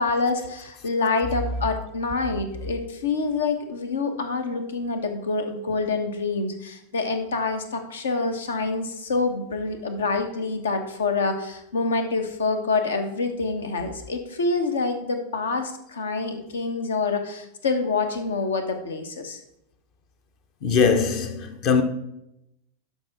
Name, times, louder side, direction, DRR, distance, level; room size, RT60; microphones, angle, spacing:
voice 1, 0.0-19.4, left 3 dB, 65° left, 1.1 m, -26 dB
voice 2, 20.6-21.8, left 5 dB, 40° left, 1.0 m, -21 dB
12.0 x 5.6 x 3.6 m
figure-of-eight pair, 90°, 0 cm